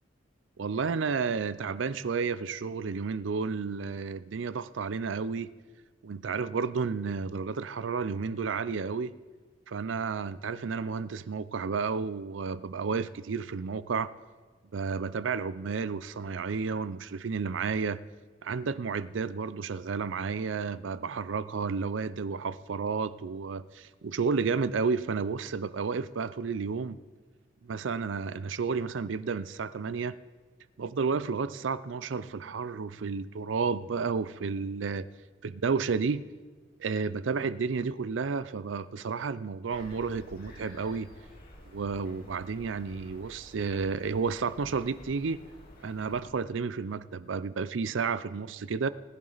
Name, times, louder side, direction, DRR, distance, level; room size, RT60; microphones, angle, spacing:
voice 1, 0.6-5.5 6.0-9.2 9.7-14.1 14.7-18.0 18.4-27.0 27.6-30.2 30.8-35.1 35.4-36.3 36.8-41.1 41.7-45.4 45.8-48.9, right 5 dB, 80° right, 16 dB, 0.5 m, -31 dB
sound 1, 39.7-46.2, left 1 dB, 55° left, 3.2 m, -51 dB
20.0 x 10.5 x 4.0 m, 1.4 s
head